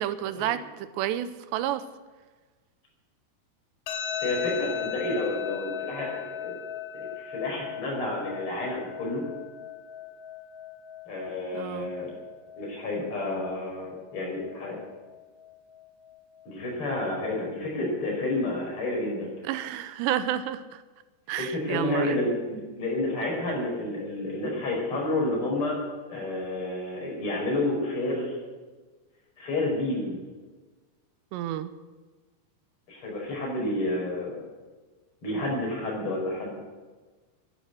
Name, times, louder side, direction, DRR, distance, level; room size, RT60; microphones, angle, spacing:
voice 1, 0.0-1.8 11.5-11.9 19.4-20.8 21.3-22.2 31.3-31.7, right 11 dB, 85° right, 12 dB, 3.0 m, -30 dB
sound 1, 3.9-16.8, left 8 dB, 70° left, 2.2 m, -39 dB
voice 2, 4.2-6.6 6.9-9.2 11.1-12.2 12.6-14.8 16.5-19.3 21.3-25.8 26.1-28.4 29.4-30.2 32.9-34.4 35.2-36.6, left 2 dB, 30° left, -2 dB, 5.6 m, -30 dB
11.5 x 11.0 x 9.5 m, 1.3 s
omnidirectional pair, 5.0 m